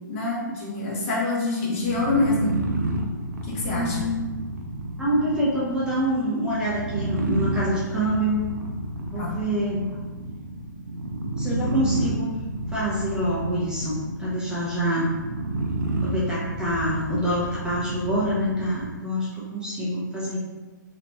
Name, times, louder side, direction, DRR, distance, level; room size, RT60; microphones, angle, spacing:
voice 1, 0.1-2.5 3.5-4.1 9.1-9.3, left 2 dB, 40° left, -5 dB, 1.1 m, -26 dB
sound 1, 1.7-19.0, right 1 dB, 65° right, 0.6 m, -31 dB
voice 2, 3.7-4.2 5.0-8.5 9.0-9.9 11.4-12.4 12.7-15.1 16.0-20.4, equal, 5° right, -8 dB, 0.7 m, -26 dB
3.8 x 3.1 x 2.2 m, 1.2 s
figure-of-eight pair, 125°, 11 cm